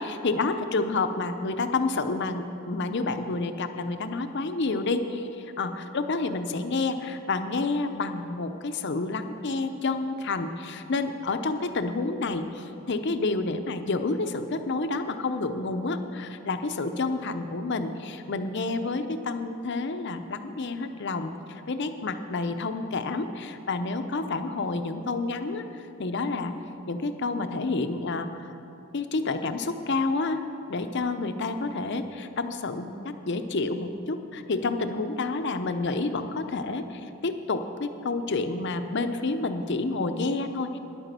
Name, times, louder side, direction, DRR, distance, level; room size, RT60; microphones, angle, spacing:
voice 1, 0.0-25.6 26.0-26.5 26.9-28.5 28.9-30.4 30.7-40.8, left 3 dB, 50° left, 9 dB, 0.6 m, -29 dB
10.5 x 9.0 x 6.7 m, 2.9 s
head